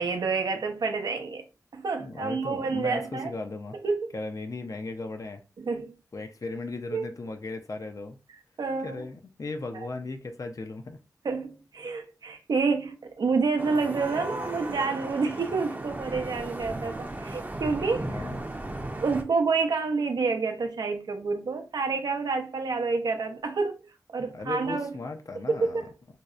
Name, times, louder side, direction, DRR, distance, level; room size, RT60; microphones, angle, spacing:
voice 1, 0.0-1.4 1.7-3.3 3.8-4.1 5.6-5.9 6.9-7.0 8.6-9.0 11.2-18.1 19.0-23.7 24.1-24.9 25.6-25.9, right 4 dB, 85° right, 0.4 m, -28 dB
voice 2, 2.0-3.8 4.1-5.4 6.1-8.2 8.8-11.0 18.0-18.5 24.3-25.9, left 3 dB, 55° left, 0.5 m, -36 dB
Vehicle horn car horn honking / Traffic noise roadway noise, 13.6-19.2, right 1 dB, 25° right, 0.5 m, -36 dB
2.7 x 2.0 x 2.3 m
cardioid pair, 45°, 7 cm